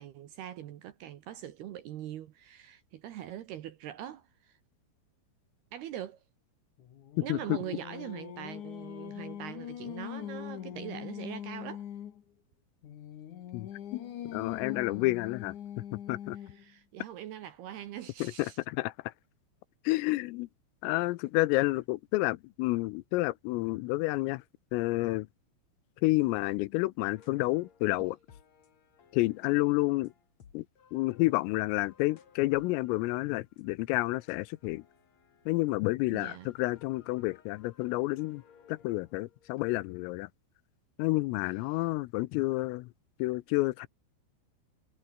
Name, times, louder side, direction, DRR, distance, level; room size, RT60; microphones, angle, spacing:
voice 1, 0.0-4.6 5.7-6.2 7.2-11.9 16.5-18.6 36.1-36.5, right 11 dB, 70° right, 2.7 m, -42 dB
Singing, 6.8-12.2 12.8-16.7, left 10 dB, 65° left, 2.0 m, -42 dB
voice 2, 13.5-15.6 15.9-16.4 18.2-19.1 19.9-20.5 20.8-24.4 24.7-25.3 26.0-28.2 29.1-30.1 30.5-30.7 30.9-34.8 35.5-38.4 38.7-40.3 41.0-42.9 43.2-43.9, left 21 dB, 85° left, 3.4 m, -30 dB
sound 1, 27.1-35.9 36.4-39.6, left 7 dB, 45° left, 2.8 m, -60 dB
omnidirectional pair, 5.9 m